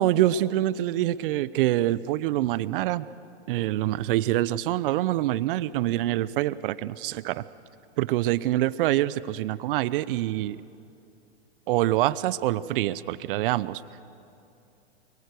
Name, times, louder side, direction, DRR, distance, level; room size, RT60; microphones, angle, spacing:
voice 1, 0.0-3.1 3.5-7.4 8.0-10.6 11.7-13.8, right 14 dB, 55° right, 17 dB, 0.8 m, -25 dB
23.5 x 22.5 x 6.8 m, 2.7 s
hypercardioid pair, 115°, 33 cm